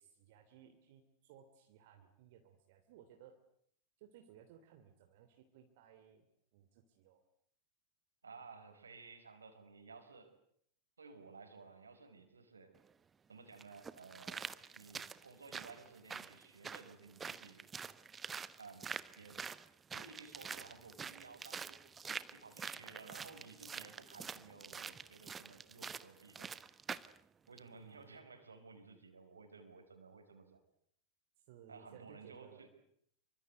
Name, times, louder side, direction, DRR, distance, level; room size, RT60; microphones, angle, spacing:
voice 1, 0.0-3.4 4.0-6.3 6.5-7.2 31.5-32.6, right 9 dB, 50° right, 5 dB, 3.0 m, -60 dB
voice 2, 8.2-10.3 11.0-12.7 13.3-17.7 18.6-19.5 19.9-21.8 22.3-26.5 27.5-30.6 31.7-32.7, right 4 dB, 75° right, 8 dB, 5.2 m, -56 dB
sound 1, 12.8-12.9 13.6-27.2 27.6-27.7, right 6 dB, 20° right, 1.1 m, -46 dB
27.5 x 24.5 x 8.1 m, 0.68 s
figure-of-eight pair, 90°, 0 cm